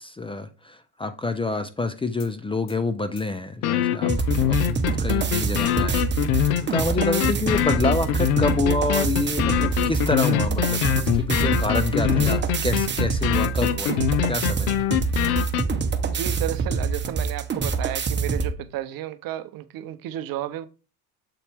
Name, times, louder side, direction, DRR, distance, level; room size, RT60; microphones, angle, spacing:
voice 1, 0.0-4.1 4.4-14.8, left 3 dB, 15° left, 0.5 m, -28 dB
sound 1, 2.2-2.3 2.7-2.8 3.2-3.3 3.6-15.6, left 12 dB, 75° left, 0.7 m, -24 dB
sound 2, 4.1-18.5, right 5 dB, 25° right, 1.0 m, -26 dB
voice 2, 16.0-20.7, right 13 dB, 50° right, 0.7 m, -32 dB
7.6 x 4.2 x 3.4 m
supercardioid pair, 90°, 43 cm